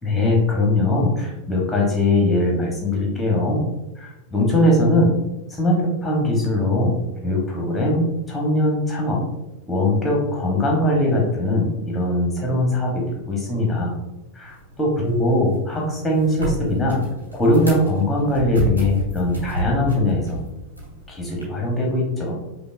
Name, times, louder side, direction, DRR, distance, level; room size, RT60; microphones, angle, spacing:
voice 1, 0.0-3.6 4.0-5.1 5.5-7.0 7.2-9.2 9.7-13.9 14.4-14.5 14.8-17.0 17.3-20.4 21.1-22.3, left 1 dB, 5° left, -2 dB, 1.2 m, -21 dB
sound 1, 14.4-21.4, right 1 dB, 80° right, 1.1 m, -31 dB
5.2 x 2.3 x 2.6 m, 0.97 s
figure-of-eight pair, 90°, 0 cm